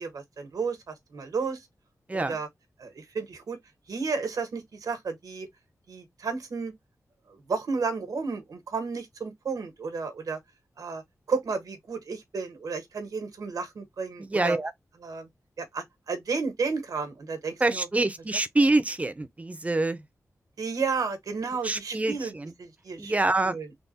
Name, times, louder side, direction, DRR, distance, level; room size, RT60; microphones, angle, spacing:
voice 1, 0.0-1.7 2.1-2.5 2.8-3.6 3.9-5.5 5.9-6.7 7.3-10.4 10.8-11.0 11.3-14.6 15.0-15.3 15.6-17.9 20.6-22.3 22.6-23.1 23.4-23.8, right 4 dB, 85° right, 1.2 m, -32 dB
voice 2, 14.2-14.7 17.6-20.0 21.6-22.5 23.0-23.6, right 2 dB, 25° right, 0.6 m, -26 dB
3.6 x 2.2 x 4.0 m
wide cardioid pair, 85°, 6 cm